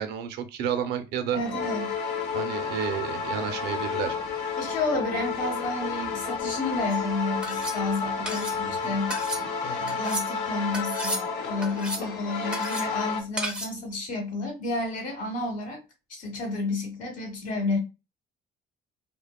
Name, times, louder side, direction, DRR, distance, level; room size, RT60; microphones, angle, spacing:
voice 1, 0.0-1.4 2.3-4.2 8.6-9.0, right 8 dB, 80° right, 0.5 m, -31 dB
sound 1, 1.3-13.2, left 5 dB, 75° left, 0.7 m, -31 dB
voice 2, 1.3-1.9 4.6-9.2 9.6-15.8 16.1-17.8, left 2 dB, 50° left, 0.9 m, -31 dB
sound 2, 6.9-7.0 7.4-7.8 8.2-8.6 9.1-9.4 9.9-10.3 10.7-11.2 11.6-12.1 12.5-12.9 13.4-13.8, right 1 dB, 5° right, 0.6 m, -33 dB
2.8 x 2.1 x 2.2 m
cardioid pair, 110°, 17 cm